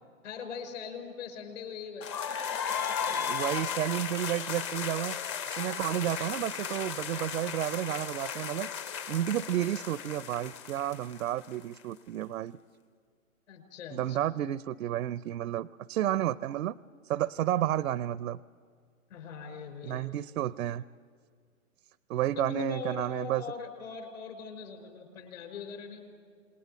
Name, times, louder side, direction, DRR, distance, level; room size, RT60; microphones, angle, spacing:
voice 1, 0.2-2.4 2.9-3.0 13.5-14.3 19.1-20.1 22.4-26.0, left 6 dB, 65° left, 5 dB, 5.7 m, -41 dB
sound 1, 2.0-11.8, left 7 dB, 20° left, 0.5 m, -35 dB
voice 2, 3.2-5.2 5.6-8.7 9.1-12.6 13.9-16.8 17.1-18.4 19.8-20.8 22.1-23.4, right 12 dB, 70° right, 17 dB, 0.6 m, -31 dB
27.5 x 20.5 x 7.7 m, 2.1 s
hypercardioid pair, 140°, 42 cm